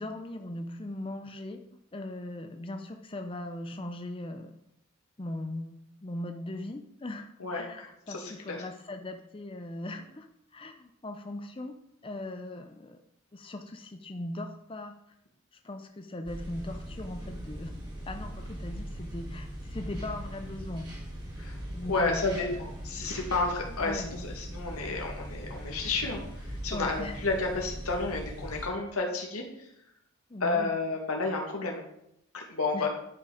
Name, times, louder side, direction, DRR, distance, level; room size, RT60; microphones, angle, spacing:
voice 1, 0.0-1.6 1.9-4.6 5.2-10.3 10.5-11.8 12.0-13.0 13.3-15.0 15.5-17.7 18.1-20.9 21.7-22.6 23.7-24.1 26.7-27.2 30.3-30.8 32.7-32.9, left 1 dB, 25° left, 5 dB, 0.5 m, -39 dB
voice 2, 7.4-8.6 21.4-21.6 21.9-29.7 30.4-31.8 32.3-32.9, left 3 dB, 85° left, 0 dB, 2.2 m, -31 dB
sound 1, 16.2-28.7, equal, 20° right, 2.7 m, -40 dB
11.5 x 5.9 x 5.0 m, 0.78 s
head